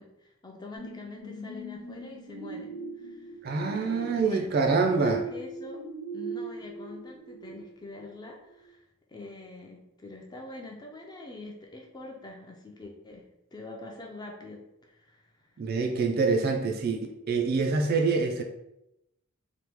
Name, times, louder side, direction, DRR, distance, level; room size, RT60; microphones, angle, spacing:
voice 1, 0.0-3.3 3.7-5.8 6.1-8.8 9.1-13.3 13.5-15.5, left 2 dB, 20° left, 0 dB, 0.4 m, -45 dB
sound 1, 0.8-8.1 8.6-8.7, right 4 dB, 90° right, 1.2 m, -39 dB
voice 2, 3.4-5.2 15.6-18.4, right 4 dB, 45° right, 3 dB, 0.3 m, -26 dB
3.0 x 2.3 x 3.4 m, 0.87 s
head